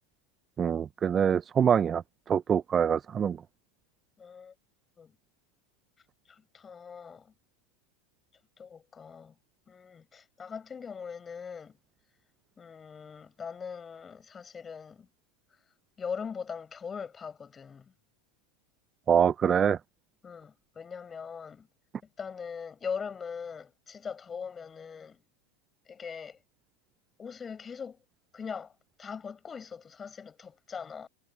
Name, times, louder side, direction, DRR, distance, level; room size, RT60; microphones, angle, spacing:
voice 1, 0.6-2.0 2.3-3.4 19.1-19.8, right 8 dB, 30° right, 0.5 m, -24 dB
voice 2, 4.2-4.5 5.0-5.1 6.3-7.3 8.6-9.3 9.7-11.8 12.6-15.1 16.0-17.9 20.2-21.7 22.2-25.2 25.9-26.4 27.2-28.0 28.3-28.7 29.0-31.1, left 6 dB, 25° left, 7.4 m, -41 dB
hypercardioid pair, 105°, 0 cm